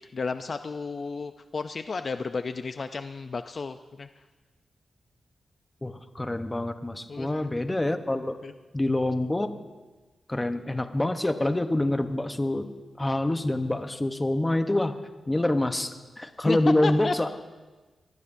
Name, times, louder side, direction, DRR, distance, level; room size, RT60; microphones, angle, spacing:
voice 1, 0.1-4.1 7.1-7.5 8.4-8.5 16.5-17.3, left 4 dB, 45° left, 9 dB, 0.4 m, -32 dB
voice 2, 5.8-8.4 8.7-9.5 10.3-12.7 13.0-14.9 15.3-17.3, left 1 dB, 15° left, 8 dB, 0.9 m, -26 dB
24.0 x 18.5 x 2.7 m, 1.2 s
wide cardioid pair, 120°, 0 cm